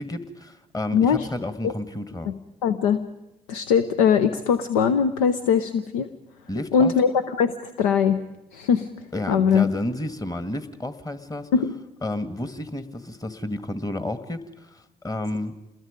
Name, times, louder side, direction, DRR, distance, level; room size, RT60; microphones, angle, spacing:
voice 1, 0.0-2.3 6.5-6.9 9.1-11.5 12.0-15.6, left 1 dB, 20° left, 11 dB, 1.9 m, -31 dB
voice 2, 0.9-1.3 1.6-1.7 2.6-3.0 3.5-6.1 6.7-7.1 7.4-8.2 8.5-8.9 9.3-9.7 11.5-11.7, left 7 dB, 85° left, 10 dB, 0.7 m, -21 dB
27.5 x 21.0 x 5.2 m, 0.95 s
hypercardioid pair, 45°, 18 cm